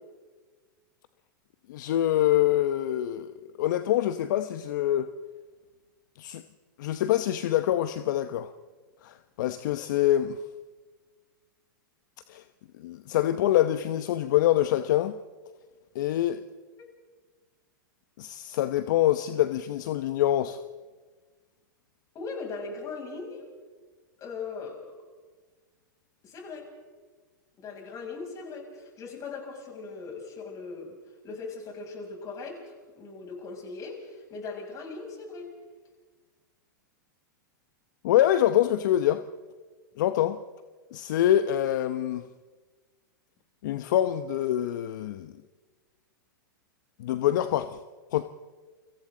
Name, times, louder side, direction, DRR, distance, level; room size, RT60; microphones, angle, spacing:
voice 1, 1.7-5.1 6.2-6.4 6.8-8.5 9.0-10.4 12.3-12.4 12.8-15.2 15.9-16.4 18.2-20.6 38.0-39.2 40.0-40.4 40.9-42.2 43.6-45.3 47.0-47.8 48.1-48.3, left 12 dB, 65° left, 0.9 m, -25 dB
voice 2, 22.1-23.4 24.2-24.9 26.2-26.7 27.6-31.0 31.2-35.5, left 4 dB, 30° left, 7.5 m, -39 dB
29.5 x 25.5 x 4.0 m
hypercardioid pair, 110°, 11 cm